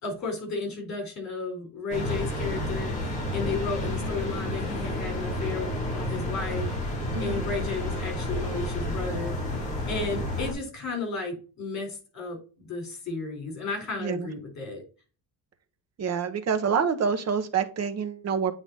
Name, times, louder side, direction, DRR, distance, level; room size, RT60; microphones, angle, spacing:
voice 1, 0.0-6.7 7.2-14.8, left 3 dB, 45° left, 3 dB, 3.9 m, -33 dB
sound 1, 1.9-10.5, left 1 dB, 20° left, 3.3 m, -30 dB
voice 2, 14.0-14.3 16.0-18.5, right 6 dB, 40° right, 7 dB, 1.1 m, -27 dB
8.6 x 4.0 x 3.9 m, 0.35 s
cardioid pair, 145°, 38 cm